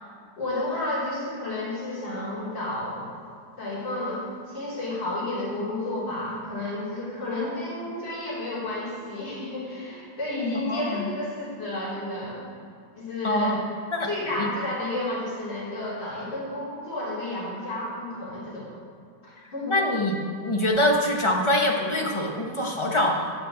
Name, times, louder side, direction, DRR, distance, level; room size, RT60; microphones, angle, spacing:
voice 1, 0.4-3.1 3.6-12.4 13.0-13.5 14.1-18.7 19.2-19.7, left 2 dB, 65° left, -8 dB, 4.2 m, -31 dB
voice 2, 10.6-11.1 13.2-13.6 13.9-14.1 14.4-14.5 19.7-20.2 20.4-23.3, left 1 dB, 20° left, 0 dB, 0.8 m, -24 dB
9.7 x 6.7 x 7.4 m, 2.3 s
omnidirectional pair, 2.2 m